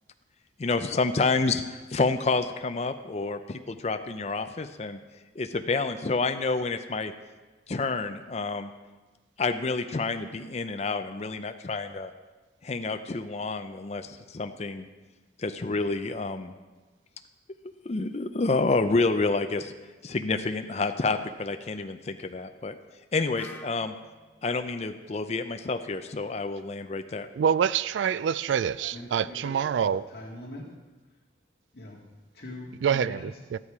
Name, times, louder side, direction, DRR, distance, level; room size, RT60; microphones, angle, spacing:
voice 1, 0.6-5.0 5.4-7.1 7.7-8.7 9.4-12.1 12.6-14.9 15.4-16.5 17.9-19.7 20.0-22.8 23.1-23.9 24.4-27.3, left 3 dB, 35° left, 7 dB, 0.5 m, -29 dB
Wind instrument woodwind instrument, 23.4-27.2, left 2 dB, 10° left, 0.9 m, -51 dB
voice 2, 27.3-30.0 32.8-33.6, right 8 dB, 90° right, 17 dB, 0.3 m, -26 dB
voice 3, 28.8-30.7 31.7-32.0 32.3-33.3, left 1 dB, 60° left, -4 dB, 1.9 m, -42 dB
13.5 x 9.8 x 4.8 m, 1.3 s
head